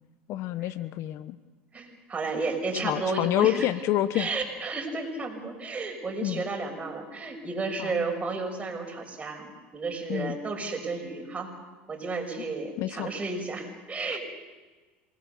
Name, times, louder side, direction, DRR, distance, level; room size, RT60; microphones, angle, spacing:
voice 1, 0.3-1.4 2.8-4.3 6.2-6.4 7.8-8.0 10.1-10.4 12.8-13.1 14.1-14.2, left 13 dB, 60° left, 14 dB, 1.0 m, -28 dB
voice 2, 1.7-3.7 4.1-11.5 11.9-14.2, right 3 dB, 25° right, 3 dB, 6.0 m, -32 dB
27.5 x 20.5 x 6.9 m, 1.3 s
supercardioid pair, 105°, 5 cm